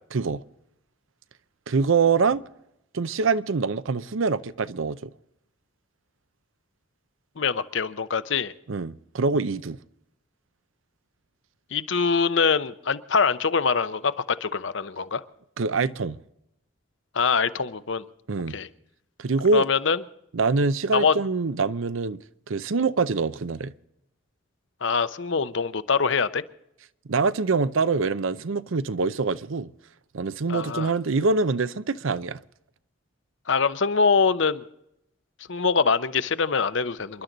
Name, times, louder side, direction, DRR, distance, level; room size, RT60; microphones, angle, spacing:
voice 1, 0.1-0.4 1.7-2.4 2.9-5.1 8.7-9.8 15.6-16.2 18.3-18.6 19.2-19.7 20.3-22.2 22.5-23.7 27.1-29.7 30.1-32.4, right 4 dB, 75° right, 0.6 m, -24 dB
voice 2, 7.4-8.5 11.7-15.2 17.1-18.0 18.5-18.7 19.5-20.0 20.9-21.1 24.8-26.4 30.5-30.9 33.5-34.6 35.5-37.2, left 5 dB, 65° left, 0.7 m, -24 dB
27.5 x 11.5 x 4.0 m
head